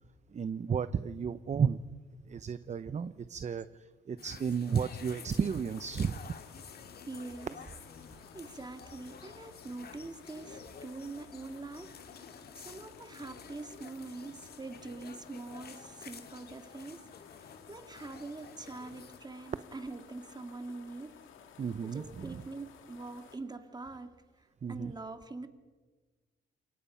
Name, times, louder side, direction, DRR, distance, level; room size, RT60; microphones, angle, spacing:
voice 1, 0.3-1.8 2.3-6.3 21.6-22.3 24.6-24.9, right 6 dB, 35° right, 13 dB, 0.8 m, -33 dB
sound 1, 4.2-19.2, left 6 dB, 50° left, 2.2 m, -51 dB
sound 2, 4.7-23.4, left 8 dB, 80° left, 2.7 m, -55 dB
voice 2, 7.0-7.6 8.0-12.0 12.6-17.1 17.7-21.1 21.8-25.5, right 3 dB, 20° right, 7 dB, 2.3 m, -44 dB
28.5 x 23.5 x 5.7 m, 1.4 s
cardioid pair, 90°, 20 cm